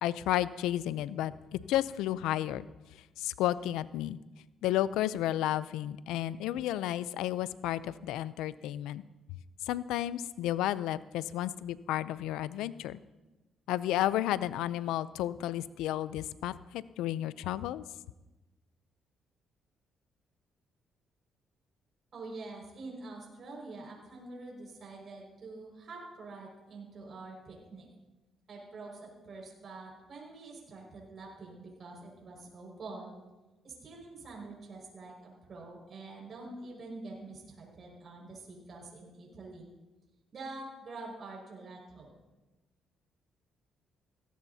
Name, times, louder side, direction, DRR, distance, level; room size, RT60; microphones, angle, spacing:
voice 1, 0.0-2.7 3.2-4.2 4.6-9.0 9.7-13.0 13.7-17.8, left 13 dB, 85° left, 17 dB, 0.4 m, -32 dB
voice 2, 22.1-27.9 28.5-33.1 33.6-39.7 40.3-42.2, right 3 dB, 55° right, -2 dB, 5.5 m, -46 dB
17.5 x 17.0 x 2.8 m, 1.1 s
supercardioid pair, 70°, 0 cm